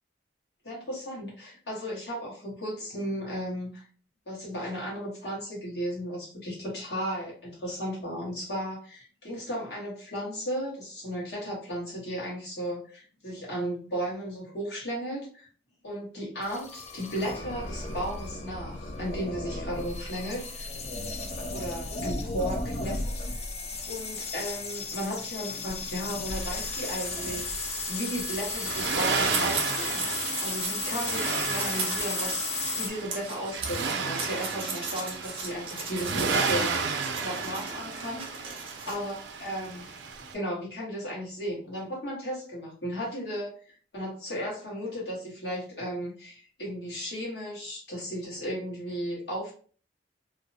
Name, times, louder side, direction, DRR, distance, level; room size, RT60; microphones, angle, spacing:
voice 1, 0.6-3.8 4.3-15.5 15.8-20.7 21.5-22.9 23.9-30.1 30.4-38.5 38.8-40.0 40.3-49.5, equal, 65° left, -5 dB, 1.2 m, -35 dB
sound 1, 16.4-32.9, left 3 dB, 35° left, 0.4 m, -34 dB
Accelerating revving vroom, 26.3-40.3, right 5 dB, 85° right, 0.5 m, -33 dB
sound 2, 29.2-31.2 31.4-36.7 37.0-39.0, right 4 dB, 30° right, 0.4 m, -37 dB
2.6 x 2.0 x 2.6 m, 0.43 s
head